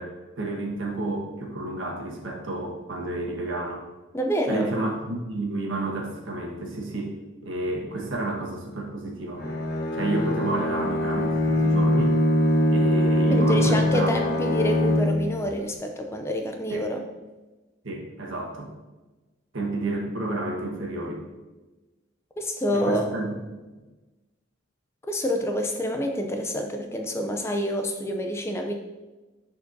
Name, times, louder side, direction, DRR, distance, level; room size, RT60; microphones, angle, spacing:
voice 1, 0.0-3.9 4.5-7.1 7.4-9.4 9.9-12.2 12.7-14.2 16.7-16.8 17.8-18.7 19.5-21.2 22.7-23.3, right 2 dB, 70° right, 0 dB, 1.4 m, -30 dB
voice 2, 4.1-4.7 13.3-17.0 22.4-23.1 25.0-28.7, equal, 15° left, 4 dB, 0.4 m, -27 dB
Bowed string instrument, 9.4-15.4, left 1 dB, 50° left, 1.4 m, -22 dB
11.0 x 4.5 x 2.7 m, 1.2 s
head